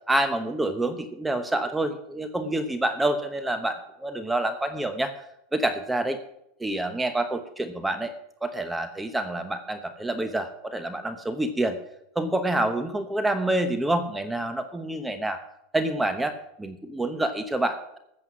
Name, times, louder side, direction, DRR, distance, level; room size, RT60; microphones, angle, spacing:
voice 1, 0.1-5.1 5.5-6.2 6.6-8.1 8.4-11.8 12.1-15.4 15.7-18.0, right 1 dB, 10° right, 9 dB, 1.0 m, -27 dB
13.5 x 7.7 x 6.2 m, 0.80 s
supercardioid pair, 120°, 0 cm